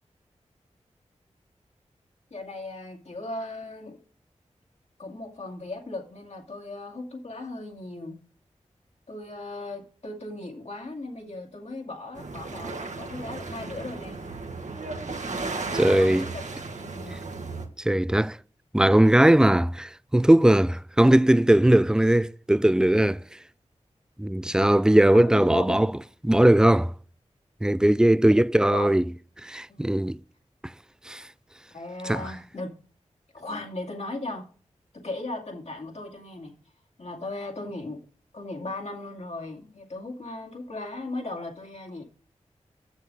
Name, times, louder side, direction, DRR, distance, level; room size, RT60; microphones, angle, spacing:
voice 1, 2.3-4.0 5.0-8.2 9.1-14.2 15.8-16.4 16.8-17.2 25.1-25.8 28.6-28.9 29.7-29.8 31.7-32.8 33.3-34.5 34.9-36.6 37.0-38.0 38.3-42.0, left 2 dB, 60° left, 2.2 m, -37 dB
sound 1, 12.1-17.7, right 3 dB, 75° right, 1.4 m, -35 dB
voice 2, 15.7-16.3 17.8-18.4 18.7-23.2 24.2-25.9 26.2-26.9 27.6-29.0 29.4-30.2 31.1-31.2 32.0-32.3, right 1 dB, 5° right, 0.3 m, -19 dB
7.0 x 6.5 x 6.3 m
cardioid pair, 40°, 13 cm